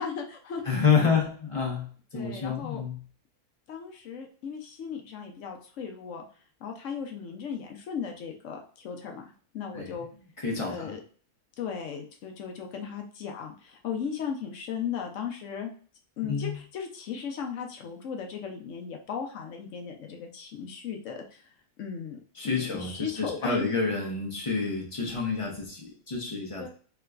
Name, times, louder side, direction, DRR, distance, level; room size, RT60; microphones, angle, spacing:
voice 1, 0.0-0.6 1.0-1.2 2.1-2.8 3.7-6.2 6.6-10.1 10.7-11.0 11.6-15.7 16.2-21.5 21.8-23.8 26.6-26.7, left 7 dB, 65° left, 2 dB, 0.9 m, -36 dB
voice 2, 0.7-3.0 9.7-9.9 10.4-10.9 16.2-16.5 22.4-26.7, left 5 dB, 35° left, -1 dB, 0.5 m, -28 dB
3.3 x 2.9 x 2.3 m, 0.42 s
omnidirectional pair, 1.6 m